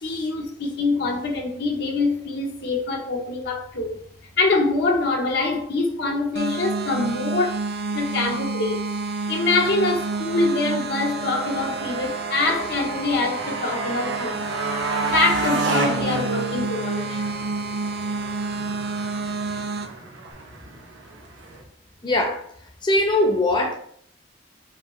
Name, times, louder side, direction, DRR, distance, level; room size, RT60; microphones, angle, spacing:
voice 1, 0.0-4.0 4.4-7.6 7.9-8.9 9.3-14.6 15.1-17.1, left 3 dB, 60° left, 0.7 m, -24 dB
sound 1, 6.4-19.9, right 3 dB, 60° right, 0.5 m, -29 dB
Motorcycle, 9.5-21.6, right 2 dB, 85° right, 0.9 m, -32 dB
voice 2, 22.0-22.5 22.8-23.8, left 1 dB, 25° left, 0.6 m, -21 dB
4.9 x 2.8 x 3.0 m
head